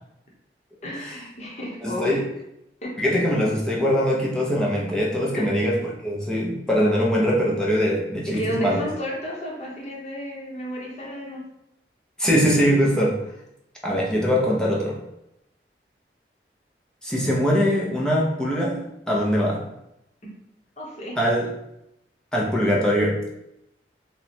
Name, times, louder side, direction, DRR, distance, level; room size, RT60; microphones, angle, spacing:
voice 1, 0.8-2.1 2.8-2.9 5.3-5.5 8.3-11.4 12.9-13.1 13.9-14.0 20.8-21.2, equal, 40° left, -3 dB, 0.9 m, -32 dB
voice 2, 1.8-2.2 3.0-8.8 12.2-13.1 13.8-15.0 17.0-18.8 19.1-19.6 21.2-21.5 22.3-23.2, equal, 5° left, -4 dB, 0.6 m, -22 dB
3.0 x 2.2 x 4.2 m, 0.84 s
head